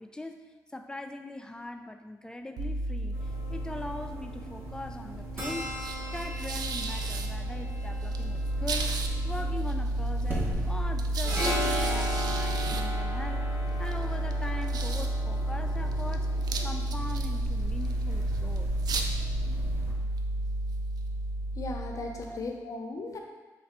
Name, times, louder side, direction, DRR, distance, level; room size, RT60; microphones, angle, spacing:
voice 1, 0.0-5.7 6.1-13.5 13.8-16.3 16.6-18.7 22.2-22.4, left 2 dB, 10° left, 5 dB, 0.4 m, -41 dB
sound 1, 2.6-22.5, right 1 dB, 70° right, 0.4 m, -31 dB
sound 2, 3.1-19.9, equal, 30° right, 1.1 m, -37 dB
voice 2, 21.5-23.2, left 2 dB, 50° left, 2 dB, 0.6 m, -36 dB
3.3 x 3.1 x 4.3 m, 1.3 s
cardioid pair, 75°, 7 cm